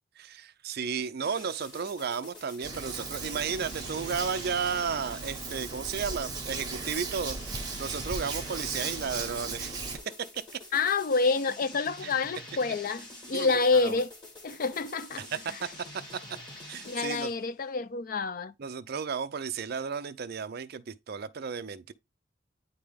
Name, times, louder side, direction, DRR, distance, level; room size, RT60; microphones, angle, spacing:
voice 1, 0.2-10.4 12.0-12.1 13.3-14.0 15.2-15.7 16.1-16.2 16.7-17.3 18.6-21.9, right 6 dB, 50° right, 0.4 m, -34 dB
sound 1, 1.2-17.4, left 1 dB, 20° left, 2.0 m, -47 dB
Hands, 2.6-10.0, right 4 dB, 20° right, 1.2 m, -37 dB
voice 2, 10.7-14.1 14.4-15.2 16.9-18.5, left 4 dB, 45° left, 0.4 m, -28 dB
9.3 x 3.3 x 3.4 m
head